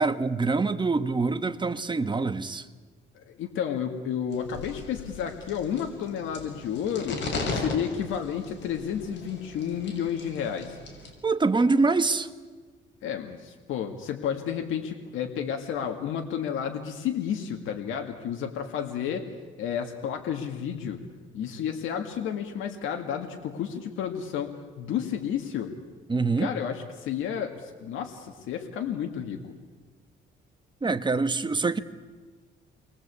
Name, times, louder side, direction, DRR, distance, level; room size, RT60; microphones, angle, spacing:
voice 1, 0.0-2.6 11.2-12.3 26.1-26.5 30.8-31.8, right 3 dB, 25° right, 1.5 m, -25 dB
voice 2, 3.3-7.2 7.5-10.8 13.0-19.2 19.6-21.0 21.3-25.7 26.4-29.5, left 8 dB, 85° left, 2.2 m, -31 dB
sound 1, 4.3-11.1, left 3 dB, 65° left, 6.6 m, -37 dB
29.5 x 22.5 x 8.4 m
cardioid pair, 90°, 20 cm